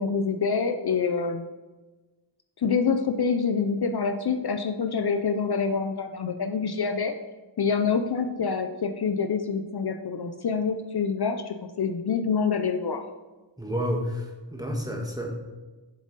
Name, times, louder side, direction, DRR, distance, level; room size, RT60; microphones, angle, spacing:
voice 1, 0.0-1.5 2.6-7.1 7.6-13.1, left 5 dB, 55° left, 7 dB, 0.6 m, -26 dB
voice 2, 13.6-15.3, equal, 10° right, 1 dB, 1.5 m, -30 dB
7.4 x 7.4 x 4.0 m, 1.2 s
wide cardioid pair, 95°, 45 cm